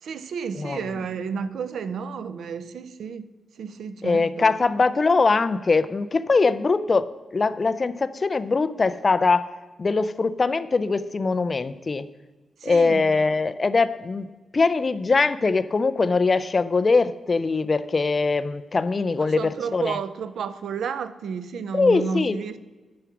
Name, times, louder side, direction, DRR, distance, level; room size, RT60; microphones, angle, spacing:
voice 1, 0.0-4.5 12.6-13.1 19.2-22.6, right 6 dB, 75° right, 0.5 m, -31 dB
voice 2, 0.5-0.9 4.0-12.1 12.6-20.0 21.7-22.4, left 4 dB, 30° left, 0.4 m, -22 dB
10.5 x 6.0 x 6.0 m
wide cardioid pair, 140°, 0 cm